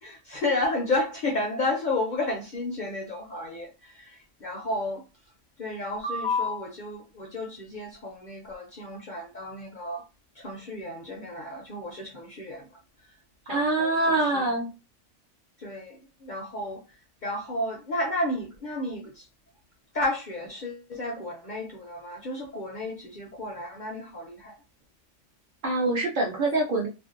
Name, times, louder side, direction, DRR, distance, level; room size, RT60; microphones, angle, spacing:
voice 1, 0.0-5.0 5.6-10.0 10.4-12.7 13.5-14.5 15.6-16.8 17.2-19.3 19.9-24.5, left 2 dB, 60° left, 0.5 m, -32 dB
voice 2, 13.5-14.7 25.6-26.9, right 2 dB, 55° right, 0.6 m, -25 dB
2.5 x 2.1 x 2.4 m
omnidirectional pair, 1.2 m